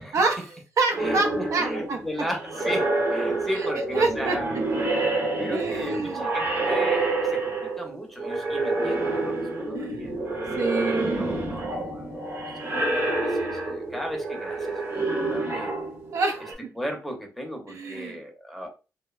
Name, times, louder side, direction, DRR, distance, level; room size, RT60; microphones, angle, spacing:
voice 1, 0.1-2.0 3.5-4.6 5.5-6.3 9.7-10.1 10.6-11.2 16.1-16.7 17.7-18.2, right 3 dB, 65° right, 0.5 m, -27 dB
sound 1, 0.9-7.9 8.2-16.5, right 2 dB, 50° right, 1.0 m, -28 dB
voice 2, 1.0-4.6 5.3-10.1 10.7-15.7 16.8-18.7, equal, ahead, 0.7 m, -36 dB
2.7 x 2.1 x 2.4 m
cardioid pair, 90°, 6 cm